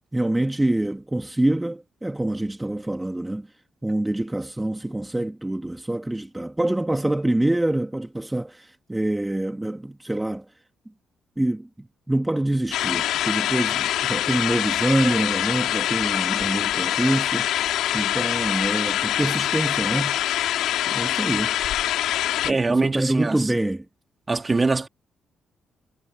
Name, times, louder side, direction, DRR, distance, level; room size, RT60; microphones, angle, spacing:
voice 1, 0.1-3.5 3.8-10.4 11.4-17.5 17.9-20.2 20.9-21.6 22.5-23.9, right 1 dB, 15° right, 2.2 m, -25 dB
sound 1, 12.7-22.5, left 12 dB, 70° left, 4.0 m, -24 dB
voice 2, 22.4-23.5 24.3-24.9, right 3 dB, 30° right, 2.7 m, -23 dB
hypercardioid pair, 45°, 0 cm